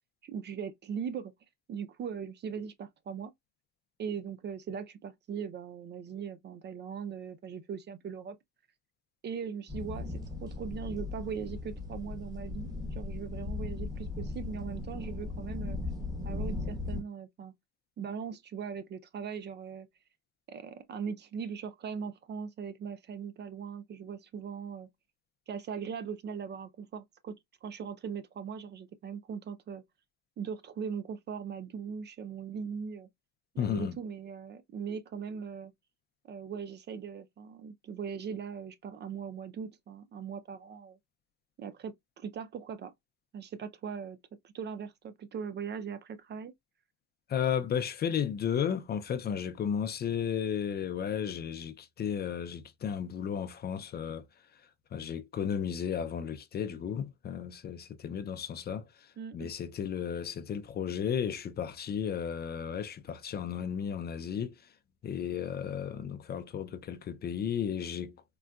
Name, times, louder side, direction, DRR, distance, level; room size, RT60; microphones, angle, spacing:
voice 1, 0.2-1.3 1.7-3.3 4.0-8.4 9.2-15.8 16.2-17.5 18.0-19.9 20.5-24.9 25.5-27.4 27.6-29.8 30.4-33.1 33.5-35.7 36.3-41.0 41.6-42.9 43.3-44.2 44.4-46.5 59.2-59.5, right 6 dB, 35° right, 0.4 m, -40 dB
sound 1, 9.7-17.0, left 3 dB, 10° right, 1.1 m, -37 dB
voice 2, 33.6-33.9 47.3-54.2 54.9-59.1 59.3-64.6 65.0-68.2, left 8 dB, 35° left, 0.4 m, -34 dB
3.8 x 2.1 x 2.3 m
cardioid pair, 115°, 30 cm